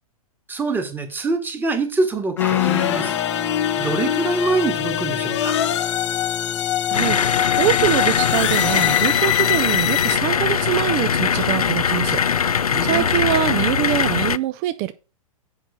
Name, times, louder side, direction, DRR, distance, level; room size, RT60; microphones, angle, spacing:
voice 1, 0.5-3.2 3.8-5.6 12.7-13.1, right 3 dB, 10° right, 1.5 m, -24 dB
sound 1, 2.4-10.2, left 12 dB, 55° left, 0.7 m, -23 dB
Guitar, 2.4-13.8, left 6 dB, 10° left, 0.6 m, -33 dB
sound 2, 6.9-14.4, left 7 dB, 80° left, 0.4 m, -21 dB
voice 2, 6.9-14.9, right 13 dB, 35° right, 0.5 m, -24 dB
8.0 x 5.6 x 5.9 m
figure-of-eight pair, 105°, 19 cm